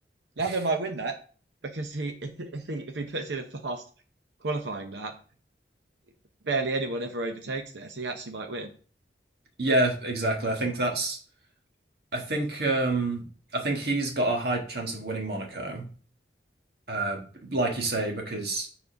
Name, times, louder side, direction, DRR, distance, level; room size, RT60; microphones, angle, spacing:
voice 1, 0.4-1.2 1.6-3.9 4.4-5.2 6.4-8.7, right 3 dB, 85° right, 5 dB, 0.8 m, -31 dB
voice 2, 9.6-11.2 12.1-13.2 13.5-15.9 16.9-18.7, right 2 dB, 65° right, 2 dB, 1.7 m, -28 dB
7.0 x 4.2 x 5.2 m, 0.41 s
head